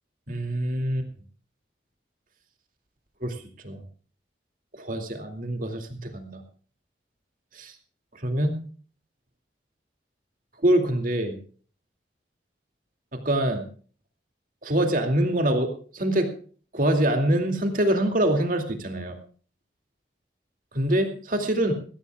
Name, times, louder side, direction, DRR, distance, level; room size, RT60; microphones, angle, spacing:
voice 1, 0.3-1.0 3.2-3.4 3.6-3.8 4.8-6.4 7.5-7.7 8.2-8.6 10.6-11.4 13.1-13.6 14.6-16.3 16.7-19.2 20.7-21.7, right 1 dB, 50° right, 5 dB, 2.4 m, -24 dB
22.0 x 15.5 x 2.3 m, 0.42 s
head